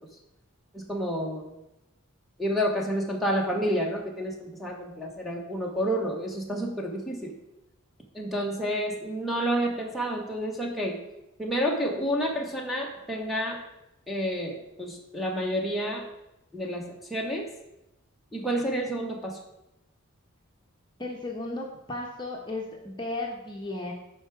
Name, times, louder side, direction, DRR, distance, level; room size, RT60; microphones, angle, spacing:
voice 1, 0.7-1.5 2.4-7.4 8.1-11.0 11.4-13.6 14.1-16.0 16.5-17.5 18.3-19.4, equal, ahead, -1 dB, 1.2 m, -29 dB
voice 2, 21.0-23.9, left 2 dB, 20° left, -1 dB, 1.0 m, -35 dB
12.0 x 4.8 x 4.7 m, 0.90 s
head